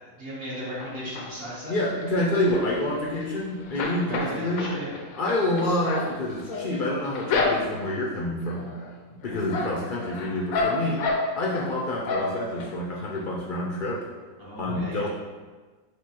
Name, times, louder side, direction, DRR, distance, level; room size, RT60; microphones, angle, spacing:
voice 1, 0.0-1.7 4.0-4.9 14.4-15.1, equal, 45° right, -7 dB, 1.2 m, -36 dB
sound 1, 0.8-1.6 2.0-3.3 3.6-8.0 8.5-8.9 9.2-11.7 12.0-12.7 13.1-13.2 13.5-13.6, left 3 dB, 85° left, 1.1 m, -30 dB
voice 2, 1.7-4.7 5.1-8.7 9.1-11.0 11.4-14.0 14.6-15.1, left 1 dB, 55° left, -3 dB, 0.6 m, -27 dB
5.2 x 3.2 x 2.9 m, 1.3 s
omnidirectional pair, 1.4 m